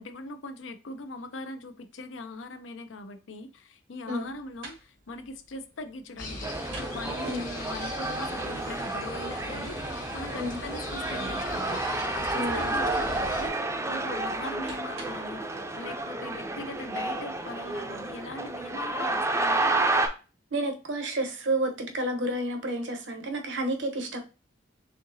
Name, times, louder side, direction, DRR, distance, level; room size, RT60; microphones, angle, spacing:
voice 1, 0.0-11.8 12.1-15.4 15.8-19.6, left 2 dB, 75° left, 0.6 m, -41 dB
sound 1, 4.2-15.4, right 1 dB, 85° right, 1.3 m, -51 dB
sound 2, 6.2-13.5, left 2 dB, 45° left, 1.1 m, -39 dB
sound 3, 6.4-20.1, right 2 dB, 15° right, 0.5 m, -31 dB
voice 2, 12.3-12.9 20.5-24.2, right 1 dB, 70° right, 0.9 m, -30 dB
4.4 x 3.6 x 2.7 m
head